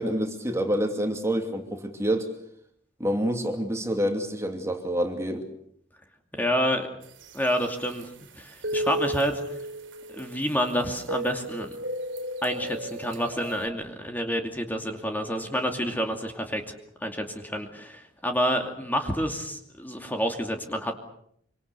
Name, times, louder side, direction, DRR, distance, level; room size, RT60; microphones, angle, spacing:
voice 1, 0.0-2.3 3.0-5.4, equal, 15° right, 4 dB, 2.7 m, -27 dB
voice 2, 6.3-6.9 7.3-8.1 8.4-9.4 10.1-11.8 12.4-16.7 17.0-20.9, equal, 10° left, 4 dB, 2.6 m, -28 dB
sound 1, 7.0-13.7, right 1 dB, 80° right, 3.6 m, -35 dB
26.0 x 25.5 x 6.9 m, 0.68 s
head